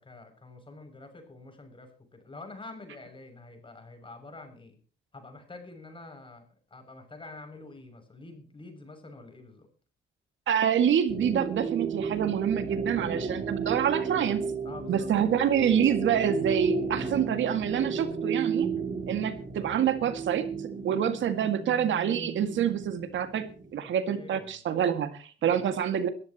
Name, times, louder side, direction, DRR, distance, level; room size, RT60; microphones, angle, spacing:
voice 1, 0.0-4.8 5.1-9.7 14.6-15.1 23.8-24.6 25.4-25.7, left 2 dB, 25° left, 6 dB, 6.7 m, -47 dB
voice 2, 10.5-14.4 14.9-18.7 19.1-20.5 20.8-26.1, right 8 dB, 70° right, 9 dB, 2.1 m, -27 dB
sound 1, 11.1-23.7, right 5 dB, 40° right, 3.8 m, -33 dB
21.5 x 14.0 x 3.0 m, 0.38 s
cardioid pair, 90°, 20 cm